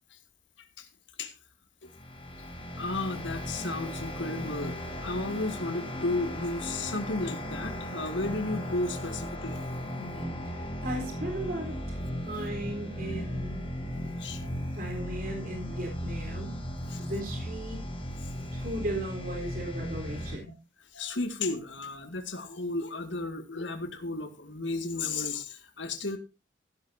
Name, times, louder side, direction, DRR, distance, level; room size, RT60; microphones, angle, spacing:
sound 1, 1.8-20.4, equal, 30° left, 6.2 m, -36 dB
voice 1, 2.8-9.7 13.9-14.5 16.9-17.0 20.9-26.2, left 2 dB, 80° left, 7 dB, 2.0 m, -34 dB
voice 2, 9.9-12.0 12.2-13.6 14.7-16.6 17.0-17.8 18.5-20.5, right 1 dB, 50° right, 3 dB, 4.0 m, -37 dB
14.5 x 13.0 x 2.7 m, 0.26 s
head